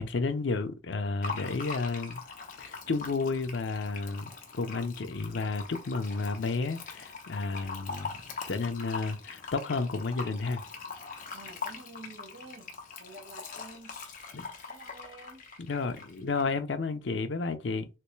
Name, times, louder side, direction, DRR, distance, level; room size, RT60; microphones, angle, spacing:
voice 1, 0.0-2.2 2.6-8.2 8.5-10.6 14.3-14.5 15.6-17.9, left 3 dB, 85° left, 0.6 m, -32 dB
Fill (with liquid), 1.2-16.4, left 4 dB, 50° left, 0.9 m, -42 dB
voice 2, 11.3-12.7 13.0-14.0 14.7-15.4, right 2 dB, 60° right, 1.1 m, -49 dB
3.4 x 3.0 x 3.2 m
head